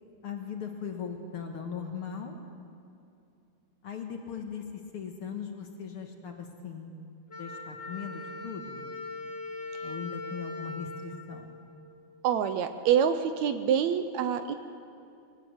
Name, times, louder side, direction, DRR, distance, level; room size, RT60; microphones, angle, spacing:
voice 1, 0.2-2.4 3.8-6.9 7.4-8.9 9.8-11.5, left 6 dB, 55° left, 3 dB, 2.0 m, -39 dB
Wind instrument woodwind instrument, 7.3-12.1, left 3 dB, 25° left, 2.2 m, -40 dB
voice 2, 12.2-14.5, right 8 dB, 75° right, 9 dB, 1.9 m, -26 dB
22.0 x 16.5 x 8.0 m, 2.6 s
omnidirectional pair, 3.6 m